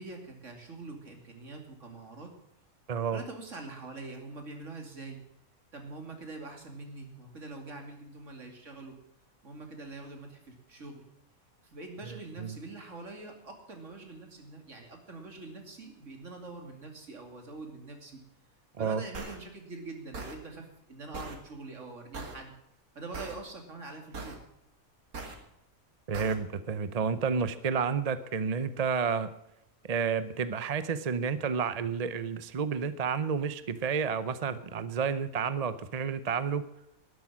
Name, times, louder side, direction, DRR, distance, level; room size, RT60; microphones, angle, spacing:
voice 1, 0.0-2.3 3.1-5.2 5.7-8.9 9.4-11.0 11.6-18.2 18.8-22.5 22.9-24.4, right 3 dB, 55° right, 3 dB, 2.9 m, -44 dB
voice 2, 2.9-3.2 12.4-12.6 18.8-19.0 26.1-29.3 29.9-36.6, right 6 dB, 40° right, 13 dB, 0.6 m, -30 dB
sound 1, 19.1-19.3 20.1-20.4 21.1-21.4 22.1-22.4 23.1-23.3 24.1-24.4 25.1-25.3 26.1-26.3, right 3 dB, 85° right, 2.5 m, -39 dB
12.5 x 11.5 x 7.3 m, 0.78 s
omnidirectional pair, 1.5 m